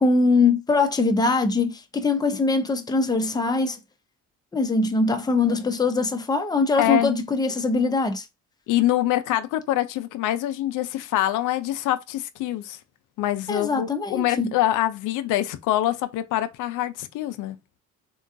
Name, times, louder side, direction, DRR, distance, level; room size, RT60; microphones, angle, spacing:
voice 1, 0.0-3.8 4.5-8.2 13.5-14.5, left 3 dB, 15° left, 0.6 m, -22 dB
voice 2, 6.8-7.1 8.7-12.8 13.2-17.6, left 13 dB, 85° left, 0.5 m, -25 dB
3.7 x 2.3 x 2.4 m
cardioid pair, 90°, 30 cm